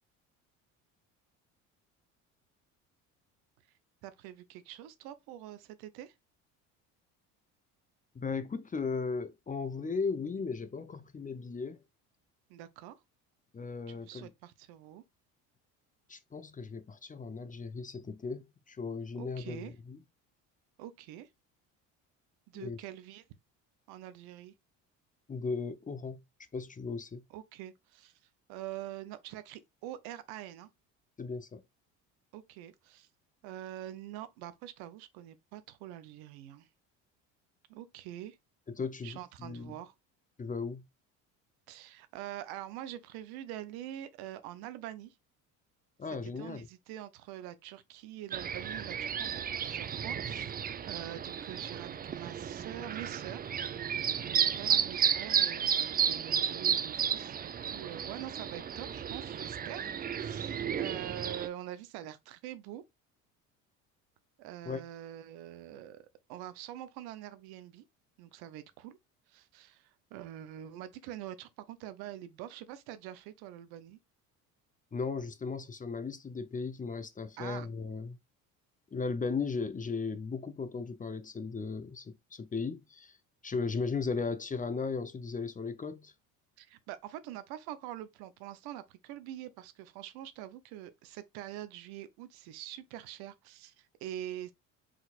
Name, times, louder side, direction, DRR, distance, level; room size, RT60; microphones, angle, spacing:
voice 1, 4.0-6.1 12.5-13.0 13.9-15.0 19.2-19.7 20.8-21.3 22.5-23.2 23.9-24.5 27.3-28.1 28.5-30.7 32.3-33.1 33.4-36.7 37.7-38.4 39.0-39.9 41.7-45.1 46.0-50.5 50.9-53.5 54.2-59.9 60.2-62.8 64.4-66.0 66.3-67.8 68.2-69.0 69.3-74.0 77.4-77.7 86.6-94.5, right 12 dB, 70° right, 0.9 m, -45 dB
voice 2, 8.1-11.8 13.5-14.3 16.1-20.0 22.5-22.8 25.3-26.2 26.5-27.2 31.2-31.6 38.7-39.7 40.4-40.8 46.0-46.7 64.7-64.8 74.9-78.2 78.9-83.1 83.4-86.1, left 4 dB, 20° left, 0.7 m, -36 dB
sound 1, 48.3-61.5, right 8 dB, 25° right, 0.5 m, -33 dB
4.7 x 3.9 x 2.4 m
hypercardioid pair, 75°, 39 cm